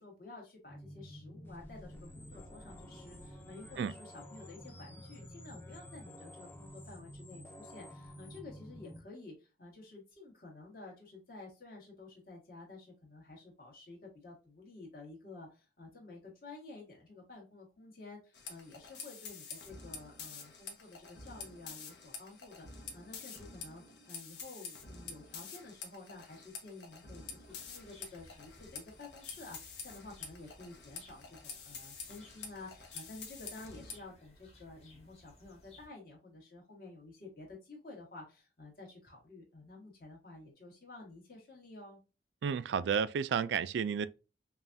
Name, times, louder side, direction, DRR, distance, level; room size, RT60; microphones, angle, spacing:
voice 1, 0.0-42.0, left 3 dB, 55° left, 1.6 m, -51 dB
sound 1, 0.7-9.0, equal, 10° left, 0.6 m, -50 dB
sound 2, 18.3-34.0, left 5 dB, 75° left, 1.0 m, -48 dB
sound 3, 27.4-35.9, left 1 dB, 35° left, 1.7 m, -60 dB
voice 2, 42.4-44.1, right 7 dB, 80° right, 0.3 m, -31 dB
5.4 x 2.3 x 2.6 m
head